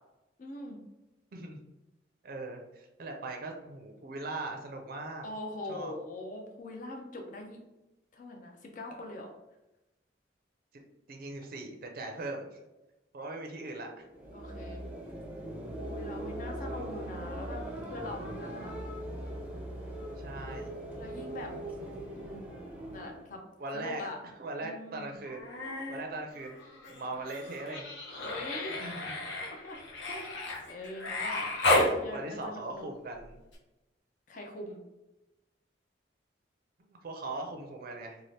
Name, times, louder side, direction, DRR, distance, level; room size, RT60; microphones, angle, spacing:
voice 1, 0.4-0.8 5.2-7.6 8.1-9.3 14.3-14.8 15.8-18.7 21.0-21.6 22.1-22.6 22.9-23.4 23.7-24.2 24.6-25.1 28.2-28.9 29.4-29.8 30.1-32.9 34.3-34.8, left 2 dB, 45° left, 2 dB, 0.4 m, -42 dB
voice 2, 1.3-1.6 2.2-5.3 5.7-5.9 11.1-12.6 13.1-14.1 16.5-16.9 20.2-20.8 23.6-25.5 25.9-26.6 26.9-27.9 28.8-29.1 32.1-33.4 36.9-38.2, right 2 dB, 50° right, 2 dB, 0.4 m, -40 dB
sound 1, 14.0-23.4, right 1 dB, 5° right, 0.5 m, -40 dB
Human voice, 25.2-26.0 26.3-31.9 33.5-33.6, left 1 dB, 75° left, 0.9 m, -32 dB
2.7 x 2.4 x 3.2 m, 0.99 s
head